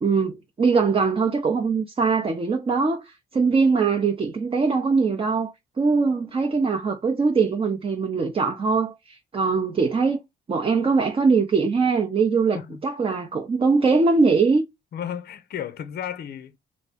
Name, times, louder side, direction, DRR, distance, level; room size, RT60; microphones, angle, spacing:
voice 1, 0.0-10.2 10.5-14.6, right 4 dB, 30° right, 0.6 m, -22 dB
voice 2, 14.9-16.6, left 9 dB, 50° left, 0.5 m, -33 dB
2.7 x 2.6 x 3.4 m
cardioid pair, 90°, 20 cm